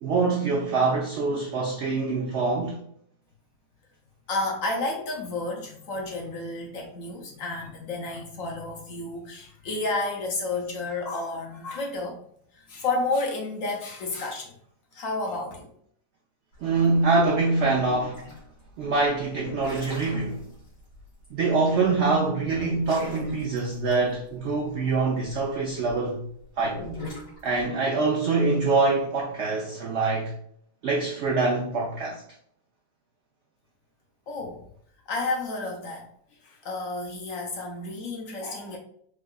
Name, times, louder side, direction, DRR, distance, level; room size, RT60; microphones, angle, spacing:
voice 1, 0.0-2.8 16.6-18.2 18.8-20.4 21.3-26.3 26.6-26.8 27.4-30.3 30.8-32.2, right 3 dB, 85° right, 0.6 m, -24 dB
voice 2, 4.3-12.2 12.5-14.5 14.9-15.7 34.3-34.6 35.1-36.1 36.4-38.8, left 2 dB, 65° left, 0.9 m, -31 dB
sound 1, 16.5-26.0 26.6-27.7, left 2 dB, 85° left, 2.3 m, -40 dB
4.6 x 2.3 x 2.3 m
omnidirectional pair, 1.8 m